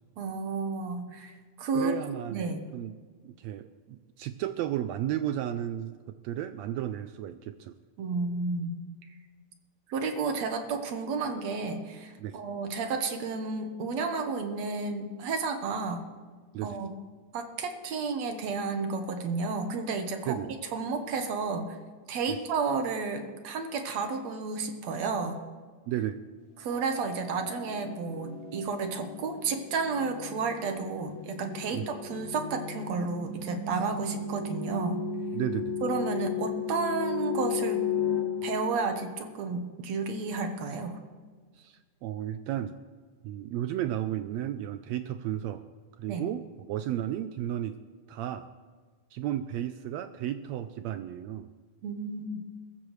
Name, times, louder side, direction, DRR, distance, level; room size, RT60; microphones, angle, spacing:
voice 1, 0.2-1.9 2.3-2.7 8.0-8.8 9.9-16.0 16.6-16.9 17.3-20.4 20.7-21.8 22.1-25.4 26.6-35.0 35.8-37.8 38.4-41.0 46.1-46.3 51.8-52.4, right 4 dB, 65° right, 6 dB, 2.1 m, -32 dB
voice 2, 1.7-2.9 3.2-7.7 12.2-12.4 16.5-16.8 20.3-20.5 22.3-22.4 25.9-26.2 31.7-31.9 35.3-35.7 41.6-42.8 43.2-45.6 46.0-47.8 48.1-48.5 49.1-51.5, right 11 dB, 85° right, 10 dB, 1.5 m, -33 dB
sound 1, 26.7-39.4, left 6 dB, 85° left, 3.3 m, -35 dB
22.0 x 13.5 x 3.2 m, 1.5 s
omnidirectional pair, 3.6 m